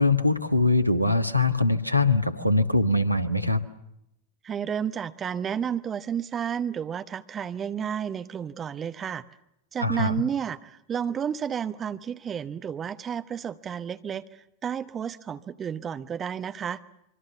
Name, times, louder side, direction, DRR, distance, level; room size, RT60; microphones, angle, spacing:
voice 1, 0.0-3.6 9.8-10.1, left 2 dB, 90° right, 10 dB, 1.4 m, -22 dB
voice 2, 4.4-9.2 9.7-14.3 14.6-16.8, right 8 dB, 25° right, 11 dB, 1.1 m, -31 dB
26.0 x 24.5 x 7.1 m, 0.80 s
figure-of-eight pair, 90°, 0 cm